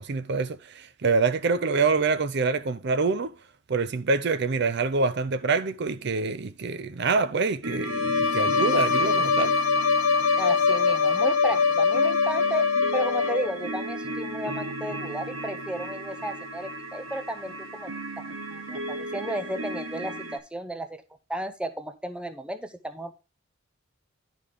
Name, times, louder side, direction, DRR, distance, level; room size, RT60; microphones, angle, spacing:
voice 1, 0.0-3.3 3.7-9.6, right 4 dB, 55° right, 0.5 m, -26 dB
sound 1, 7.6-20.4, right 1 dB, 80° right, 1.3 m, -35 dB
Bowed string instrument, 7.8-13.6, left 5 dB, 85° left, 1.0 m, -23 dB
voice 2, 10.4-17.9 18.2-21.0 21.3-23.2, right 1 dB, 5° right, 0.6 m, -34 dB
11.0 x 5.1 x 3.5 m
head